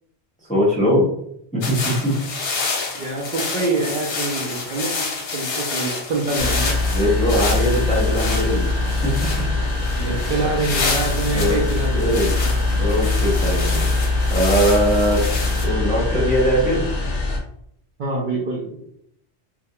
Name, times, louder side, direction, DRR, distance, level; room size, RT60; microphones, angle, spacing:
voice 1, 0.5-1.1 1.5-2.1 6.9-8.7 9.0-9.1 10.2-10.3 11.3-11.6 11.9-12.3 12.8-13.8 14.3-15.2 15.6-16.8, equal, 10° left, -6 dB, 0.7 m, -20 dB
sound 1, 1.6-15.7, left 4 dB, 85° left, 0.9 m, -29 dB
voice 2, 2.9-5.1 5.3-6.7 10.0-12.4 18.0-18.7, right 3 dB, 55° right, -4 dB, 0.6 m, -25 dB
sound 2, 6.4-17.4, left 2 dB, 55° left, 0.7 m, -22 dB
2.3 x 2.1 x 2.7 m, 0.73 s
omnidirectional pair, 1.1 m